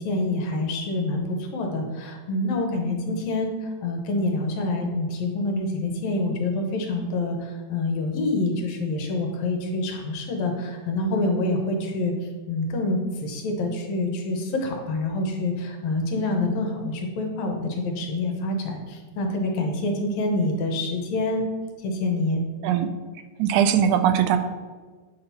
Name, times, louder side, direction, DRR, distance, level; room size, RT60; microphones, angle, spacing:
voice 1, 0.0-12.1 12.5-21.5 21.8-22.4, left 2 dB, 70° left, 2 dB, 2.0 m, -26 dB
voice 2, 23.4-24.4, right 9 dB, 85° right, 9 dB, 2.0 m, -20 dB
8.0 x 2.9 x 5.4 m, 1.4 s
omnidirectional pair, 3.4 m